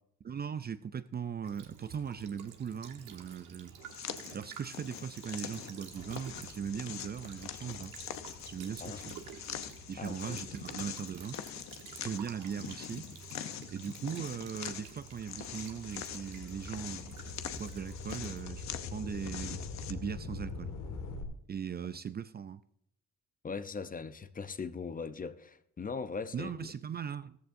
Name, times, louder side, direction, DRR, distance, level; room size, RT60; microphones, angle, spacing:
voice 1, 0.2-3.7 4.3-8.0 8.4-9.2 9.9-13.1 13.7-18.6 18.9-20.7 21.5-22.6 26.3-27.4, right 7 dB, 35° right, 0.4 m, -39 dB
Child speech kid speaking / Bird vocalization bird call bird song / Stream, 1.4-18.4, right 7 dB, 85° right, 1.4 m, -51 dB
sound 1, 3.8-19.9, left 10 dB, 65° left, 0.8 m, -44 dB
sound 2, 5.9-12.7 13.3-21.2, left 3 dB, 85° left, 1.9 m, -46 dB
voice 2, 10.0-10.6 23.4-26.7, left 5 dB, 30° left, 0.6 m, -40 dB
14.0 x 14.0 x 2.6 m
cardioid pair, 90°, 30 cm